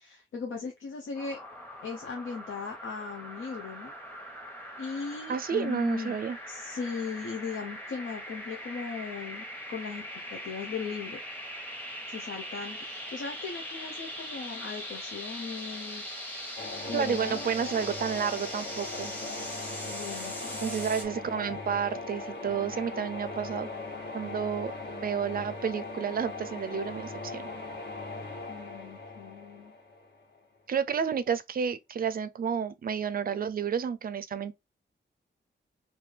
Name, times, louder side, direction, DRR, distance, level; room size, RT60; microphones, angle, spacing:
voice 1, 0.0-1.4 1.8-3.9 4.8-6.2 6.5-10.0 10.3-11.2 12.1-16.0 16.9-17.4 19.8-20.6 28.5-29.7, left 5 dB, 85° left, 0.7 m, -38 dB
sound 1, 1.1-21.0, equal, 10° left, 1.0 m, -41 dB
voice 2, 5.3-6.4 16.9-19.1 20.6-23.7 24.1-24.7 25.0-27.4 30.7-34.5, right 7 dB, 50° right, 0.4 m, -31 dB
sound 2, 16.6-30.4, left 3 dB, 60° left, 1.4 m, -39 dB
3.2 x 2.7 x 3.4 m
wide cardioid pair, 135°, 20 cm